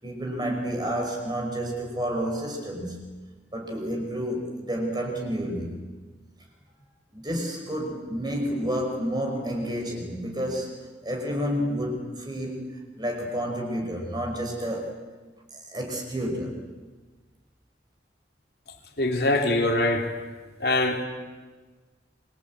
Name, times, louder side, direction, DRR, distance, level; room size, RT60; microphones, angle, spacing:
voice 1, 0.0-3.0 3.5-5.8 7.1-15.0 15.5-16.7, equal, 25° right, 2 dB, 5.5 m, -30 dB
voice 2, 19.0-20.1 20.6-21.0, left 2 dB, 60° left, 3 dB, 3.5 m, -23 dB
27.5 x 24.0 x 8.7 m, 1.3 s
head